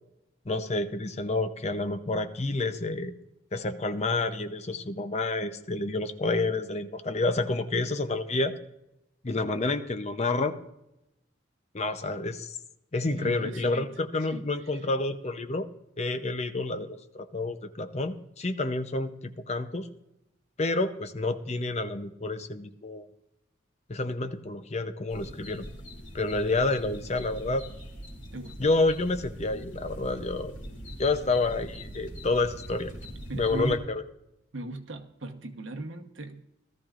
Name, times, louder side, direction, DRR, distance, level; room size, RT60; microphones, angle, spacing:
voice 1, 0.5-3.1 3.5-8.5 9.2-10.5 11.7-12.6 12.9-15.7 16.0-19.9 20.6-23.1 23.9-25.7 26.1-27.6 28.6-30.5 31.0-32.9 33.3-34.0, left 2 dB, 35° left, 9 dB, 0.7 m, -29 dB
voice 2, 13.2-13.9 14.3-14.5 28.3-28.6 33.3-33.9 34.5-36.4, right 2 dB, 80° right, 5 dB, 1.1 m, -37 dB
sound 1, 25.1-33.8, equal, 70° left, 2.8 m, -42 dB
17.0 x 13.5 x 2.5 m, 0.87 s
head